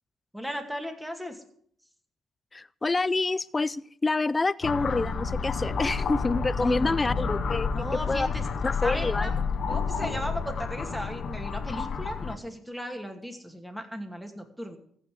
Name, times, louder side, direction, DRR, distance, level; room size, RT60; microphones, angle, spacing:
voice 1, 0.3-1.4 6.6-7.0 7.7-8.4 8.8-9.3 9.7-14.8, equal, 5° right, 4 dB, 2.4 m, -36 dB
voice 2, 2.5-7.7 8.1-8.3 8.6-9.3, left 3 dB, 25° left, 17 dB, 0.4 m, -27 dB
sound 1, 4.6-12.4, left 5 dB, 55° left, 1.4 m, -30 dB
15.0 x 5.7 x 8.4 m, 0.63 s
cardioid pair, 90°, 0 cm